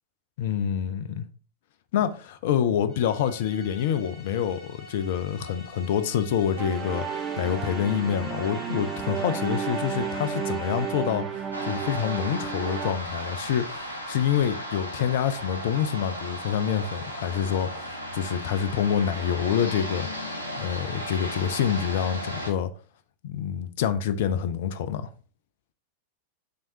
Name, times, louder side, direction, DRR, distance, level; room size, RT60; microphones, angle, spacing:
voice 1, 0.4-1.2 1.9-11.2 11.6-22.7 23.2-25.1, left 9 dB, 55° left, 0.4 m, -27 dB
sound 1, 2.9-11.4, left 1 dB, 10° left, 1.6 m, -45 dB
sound 2, 6.6-12.9, right 7 dB, 25° right, 0.7 m, -32 dB
sound 3, 11.5-22.5, equal, 85° left, 0.9 m, -35 dB
5.1 x 3.5 x 2.7 m
figure-of-eight pair, 90°, 0 cm